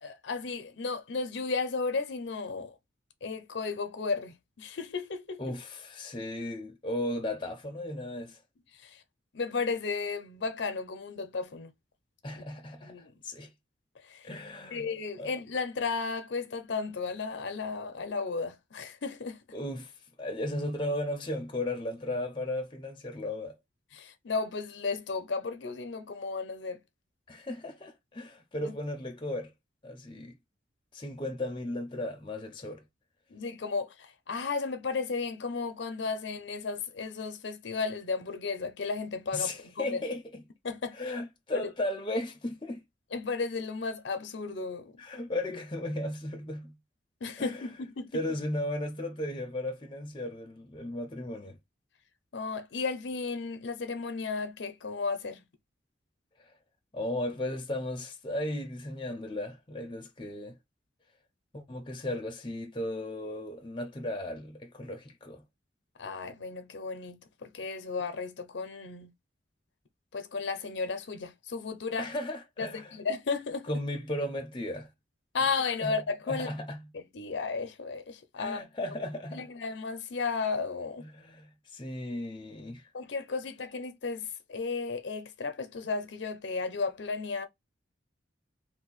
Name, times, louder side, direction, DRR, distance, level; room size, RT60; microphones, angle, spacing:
voice 1, 0.0-2.7 3.2-5.4 8.8-9.0 9.3-11.7 12.8-13.1 14.0-14.3 14.7-19.4 23.9-26.8 28.6-28.7 33.3-40.0 40.6-41.0 41.6-41.7 43.1-45.0 47.2-48.1 52.3-55.4 66.0-69.1 70.1-72.1 72.6-73.7 75.3-76.5 76.9-78.6 79.3-81.0 82.9-87.5, left 4 dB, 65° left, 0.6 m, -34 dB
voice 2, 5.4-8.4 12.2-12.9 13.2-13.5 14.2-14.9 15.2-15.3 19.5-19.9 20.2-23.6 27.3-29.5 29.8-30.4 30.9-32.8 39.3-40.4 40.9-42.8 45.0-46.8 47.4-47.7 48.1-51.6 56.4-56.5 56.9-60.5 61.5-65.4 72.0-73.0 73.6-74.9 75.8-76.0 76.3-76.9 78.4-79.5 81.0-82.9, left 1 dB, 25° left, 0.6 m, -35 dB
2.7 x 2.1 x 4.0 m
head